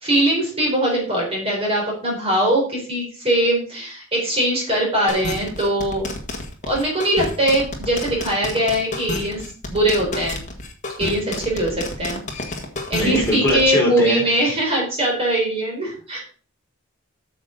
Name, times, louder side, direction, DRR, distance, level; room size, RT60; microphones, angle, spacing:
voice 1, 0.0-6.1 6.7-10.4 11.0-12.2 12.9-16.2, right 1 dB, 30° right, -2 dB, 4.0 m, -21 dB
sound 1, 5.1-13.6, left 2 dB, 35° left, 1.5 m, -29 dB
voice 2, 12.9-14.2, left 1 dB, 10° left, -4 dB, 4.1 m, -20 dB
8.9 x 6.7 x 3.9 m, 0.40 s
head